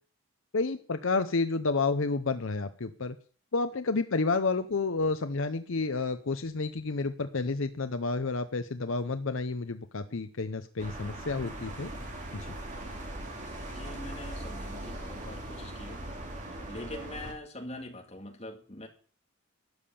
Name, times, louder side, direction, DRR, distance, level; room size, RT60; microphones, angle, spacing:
voice 1, 0.5-3.2 3.5-11.9 12.3-12.5, left 3 dB, 65° left, 0.7 m, -30 dB
sound 1, 10.8-17.3, right 1 dB, 35° right, 2.7 m, -40 dB
voice 2, 13.7-16.1 16.7-18.9, left 1 dB, 30° left, 2.2 m, -43 dB
13.0 x 8.6 x 7.1 m
head